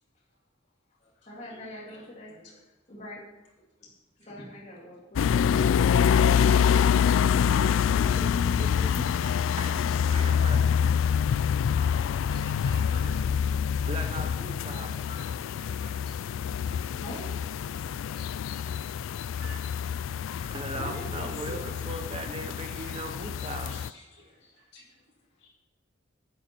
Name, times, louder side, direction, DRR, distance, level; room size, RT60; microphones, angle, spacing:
voice 1, 1.0-3.2 3.8-3.9 4.2-5.2 5.5-9.2 9.5-9.8 16.5-17.3 17.8-18.0 18.4-18.5 19.0-19.3 20.7-24.9, equal, 35° left, -5 dB, 2.2 m, -44 dB
sound 1, 5.2-23.9, left 7 dB, 85° left, 0.3 m, -26 dB
voice 2, 9.6-10.6 13.9-15.1 20.5-23.8, right 2 dB, 30° right, 6 dB, 0.9 m, -39 dB
voice 3, 12.3-13.1 14.2-14.3 15.1-15.3 15.8-16.1 16.7-16.8 17.8-17.9 18.5-18.6 19.4-19.5 20.4-20.5 24.7-24.8 25.4-25.5, left 1 dB, 60° left, -6 dB, 4.6 m, -48 dB
10.5 x 9.2 x 4.4 m, 0.94 s
head